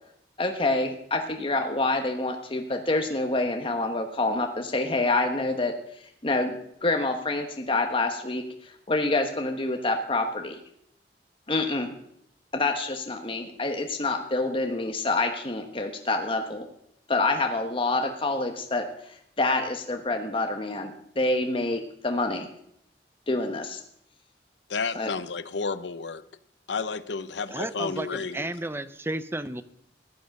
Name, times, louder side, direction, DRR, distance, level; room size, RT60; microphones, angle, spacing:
voice 1, 0.4-5.7 6.2-10.6 11.5-11.9 12.5-16.7 17.1-18.9 19.4-22.5 23.3-23.8 24.9-25.1, left 2 dB, 30° left, 1.1 m, -27 dB
voice 2, 24.7-26.2 26.7-28.4, left 4 dB, 80° left, 0.7 m, -31 dB
voice 3, 27.5-29.6, right 1 dB, 15° right, 0.5 m, -33 dB
15.0 x 9.3 x 6.5 m
head